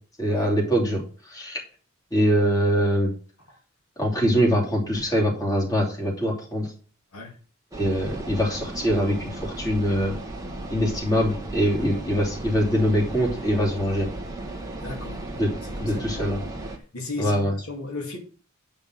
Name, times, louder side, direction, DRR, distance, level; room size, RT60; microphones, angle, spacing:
voice 1, 0.2-1.0 1.3-1.6 2.1-3.1 4.0-6.7 7.7-10.1 10.7-14.1 15.4-15.5 15.8-16.4 17.2-17.5, equal, 15° left, 2.9 m, -23 dB
sound 1, 7.7-16.8, right 2 dB, 15° right, 1.4 m, -35 dB
voice 2, 14.8-15.3 15.6-16.5 16.9-18.2, left 2 dB, 85° left, 2.4 m, -36 dB
9.1 x 5.3 x 6.2 m
head